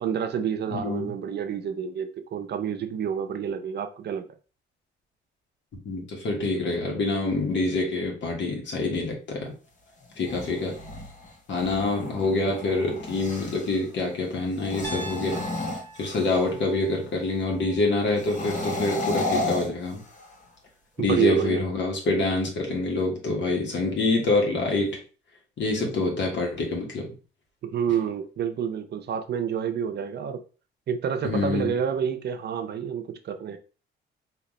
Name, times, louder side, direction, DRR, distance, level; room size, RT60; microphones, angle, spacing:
voice 1, 0.0-4.2 21.0-21.6 27.6-30.4 30.9-33.6, right 8 dB, 55° right, 0.6 m, -28 dB
voice 2, 0.7-1.1 5.8-9.5 10.2-10.7 11.5-15.4 16.0-20.0 21.0-25.0 25.6-27.1 31.2-31.7, left 2 dB, 65° left, 1.6 m, -26 dB
sound 1, 10.0-13.8 14.5-16.6 18.1-20.4, left 2 dB, 40° left, 1.1 m, -33 dB
Piano, 14.8-18.9, right 1 dB, 10° left, 1.0 m, -43 dB
4.0 x 2.9 x 3.1 m
cardioid pair, 90°, 20 cm